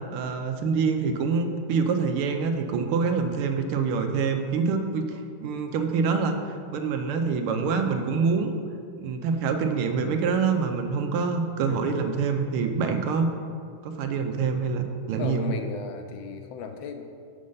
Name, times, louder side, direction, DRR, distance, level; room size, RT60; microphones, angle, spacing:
voice 1, 0.1-8.5 9.0-13.3 13.8-15.5, right 5 dB, 85° right, 5 dB, 1.6 m, -26 dB
voice 2, 15.2-17.1, left 6 dB, 75° left, 6 dB, 1.3 m, -35 dB
6.5 x 6.4 x 5.4 m, 2.3 s
omnidirectional pair, 2.3 m